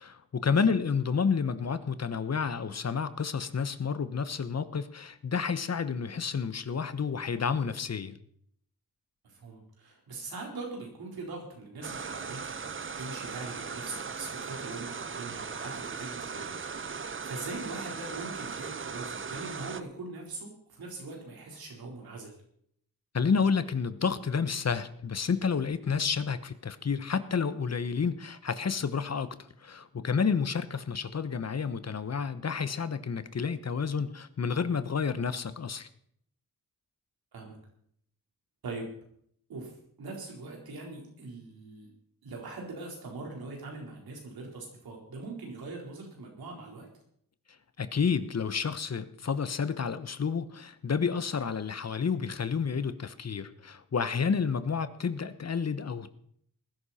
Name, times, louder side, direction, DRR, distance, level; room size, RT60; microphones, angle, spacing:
voice 1, 0.0-8.2 23.1-35.9 47.8-56.1, left 6 dB, 45° left, 13 dB, 1.1 m, -30 dB
voice 2, 9.2-12.7 13.0-16.5 16.9-22.3 37.3-37.6 38.6-38.9 39.5-41.9 42.2-46.9, right 3 dB, 85° right, -1 dB, 4.3 m, -42 dB
sound 1, 11.8-19.8, right 5 dB, 35° right, 0.8 m, -38 dB
19.5 x 11.5 x 4.3 m, 0.67 s
cardioid pair, 65°, 36 cm